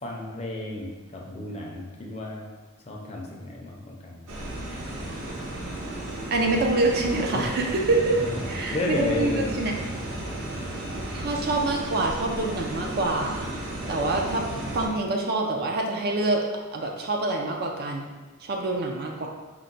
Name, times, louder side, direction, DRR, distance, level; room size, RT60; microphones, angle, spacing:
voice 1, 0.0-2.4 2.9-4.2 7.3-7.5 8.2-8.3 8.7-9.6, left 1 dB, 30° left, -1 dB, 0.5 m, -32 dB
sound 1, 4.3-14.9, right 1 dB, 80° right, 0.7 m, -34 dB
voice 2, 6.3-8.2 8.5-9.7 11.1-13.5 13.9-14.5 14.7-16.5 16.7-18.0 18.4-19.3, right 2 dB, 45° right, 1 dB, 0.4 m, -26 dB
4.5 x 2.1 x 3.9 m, 1.3 s
head